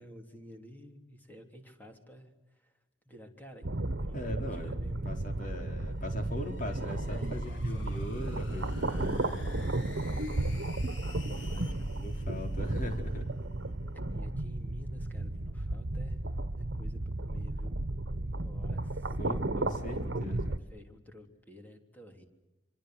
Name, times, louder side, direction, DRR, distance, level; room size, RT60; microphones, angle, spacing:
voice 1, 0.0-2.8 3.0-3.7 4.0-4.4 4.7-5.4 7.0-8.1 10.1-12.0 13.9-16.2 16.5-17.8 18.0-22.3, equal, 10° left, 4 dB, 3.3 m, -52 dB
sound 1, 3.6-20.6, right 2 dB, 75° right, 1.3 m, -34 dB
voice 2, 4.1-4.8 5.0-9.5 12.0-13.3 19.2-20.6, left 1 dB, 45° left, 4 dB, 4.0 m, -39 dB
sound 2, 5.7-13.2, left 4 dB, 85° left, 3.3 m, -53 dB
27.0 x 25.0 x 7.9 m, 0.97 s
head